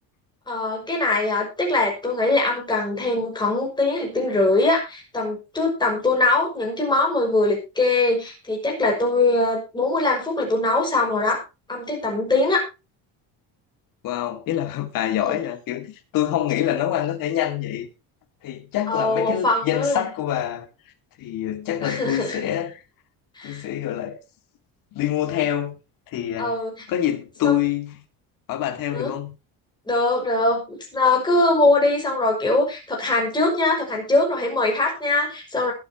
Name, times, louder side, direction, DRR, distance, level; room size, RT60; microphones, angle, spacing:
voice 1, 0.5-11.4 11.7-12.7 15.2-15.4 18.9-20.1 21.8-22.4 23.4-23.6 26.4-26.7 27.4-27.6 28.9-29.1 29.9-35.7, left 2 dB, 10° left, 5.8 m, -22 dB
voice 2, 14.0-17.9 18.4-20.7 21.2-22.8 23.4-24.2 24.9-25.8 26.1-26.5 26.9-28.0 28.5-29.3, left 11 dB, 55° left, 2.3 m, -26 dB
21.0 x 8.3 x 2.9 m
cardioid pair, 165°, 39 cm